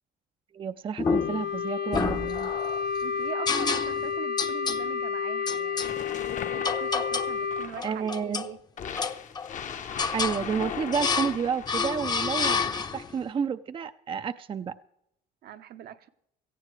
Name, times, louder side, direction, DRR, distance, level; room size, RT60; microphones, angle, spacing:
voice 1, 0.5-2.5 7.8-8.4 10.1-14.7, right 6 dB, 30° right, 11 dB, 0.5 m, -30 dB
Wind instrument woodwind instrument, 1.0-7.7, left 6 dB, 65° left, 0.6 m, -31 dB
sound 1, 1.0-1.5 1.9-2.8 3.5-4.1 4.4-4.8 5.5-5.9 6.6-7.4 7.8-8.5 9.0-9.6 10.0-10.4 10.9-11.4 11.7-13.1, left 5 dB, 25° left, 0.7 m, -29 dB
voice 2, 3.0-6.0 6.5-8.6 15.4-16.1, right 10 dB, 70° right, 8 dB, 0.9 m, -42 dB
sound 2, 5.8-8.0 8.8-11.9 12.4-13.0, left 7 dB, 50° left, 0.9 m, -38 dB
17.5 x 14.5 x 3.2 m, 0.77 s
cardioid pair, 110°, 17 cm